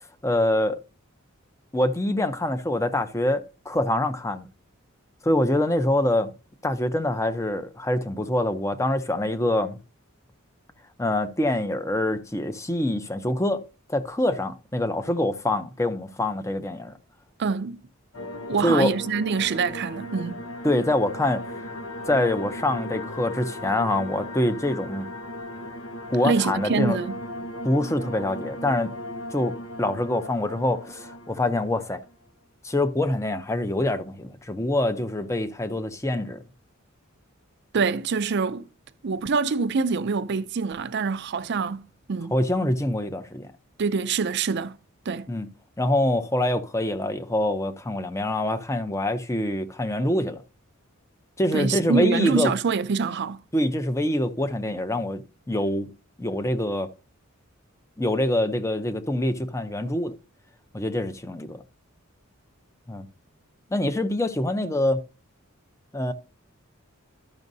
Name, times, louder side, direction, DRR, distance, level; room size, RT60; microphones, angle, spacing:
voice 1, 0.2-0.8 1.7-4.5 5.2-6.3 6.6-9.8 11.0-16.9 18.6-18.9 20.6-21.7 22.1-25.1 26.1-27.0 27.6-28.9 29.3-32.0 32.6-36.4 42.3-43.5 45.3-45.5 45.8-50.4 51.4-52.5 53.5-55.9 56.2-56.9 58.0-60.1 60.7-61.6 62.9-63.1 63.7-65.0 65.9-66.1, left 1 dB, 15° left, 0.6 m, -25 dB
voice 2, 17.4-17.9 18.5-20.4 26.2-27.2 37.7-38.7 39.0-42.3 43.8-44.8 45.1-45.3 51.5-53.4, right 5 dB, 55° right, 0.5 m, -25 dB
sound 1, 18.1-32.1, left 1 dB, 80° left, 0.9 m, -37 dB
12.0 x 6.2 x 2.7 m
head